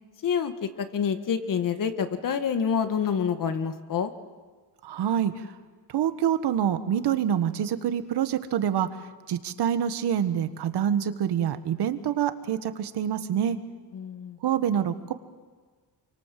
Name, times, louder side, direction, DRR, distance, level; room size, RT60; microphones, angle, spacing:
voice 1, 0.2-4.1 13.9-14.4, left 7 dB, 50° left, 9 dB, 1.7 m, -27 dB
voice 2, 4.8-5.5 5.9-13.6 14.4-15.1, right 9 dB, 75° right, 10 dB, 1.6 m, -26 dB
28.5 x 24.0 x 7.7 m, 1.4 s
cardioid pair, 155°, 41 cm